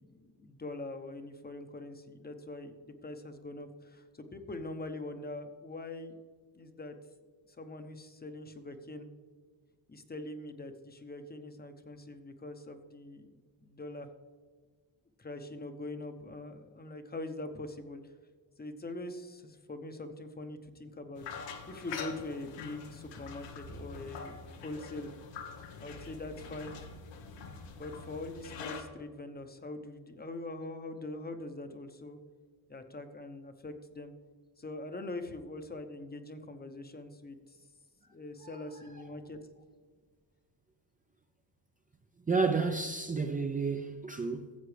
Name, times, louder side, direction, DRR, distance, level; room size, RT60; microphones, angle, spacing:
voice 1, 0.0-6.2 6.5-6.9 7.6-9.1 9.9-13.3 13.6-14.1 15.2-18.0 18.6-21.2 21.7-25.1 25.8-26.8 27.8-32.2 32.7-34.1 34.6-37.6 38.1-39.4, left 2 dB, 20° left, 0.9 m, -43 dB
sound 1, 21.2-28.8, left 5 dB, 85° left, 1.3 m, -44 dB
voice 2, 42.3-44.6, right 4 dB, 20° right, 0.6 m, -31 dB
14.5 x 7.3 x 3.3 m
cardioid pair, 90°, 42 cm